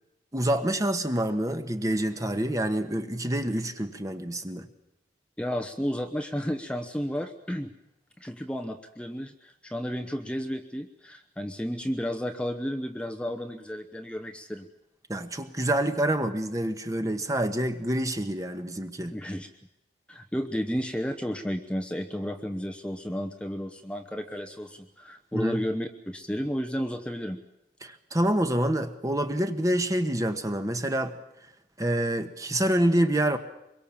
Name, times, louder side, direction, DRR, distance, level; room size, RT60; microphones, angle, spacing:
voice 1, 0.3-4.7 15.1-19.2 25.3-25.6 27.8-31.2 31.8-33.4, right 1 dB, 20° right, 8 dB, 1.4 m, -27 dB
voice 2, 5.4-7.7 8.2-14.7 19.1-19.5 20.1-27.4, equal, 5° left, 4 dB, 1.0 m, -32 dB
24.5 x 22.5 x 7.3 m, 0.86 s
head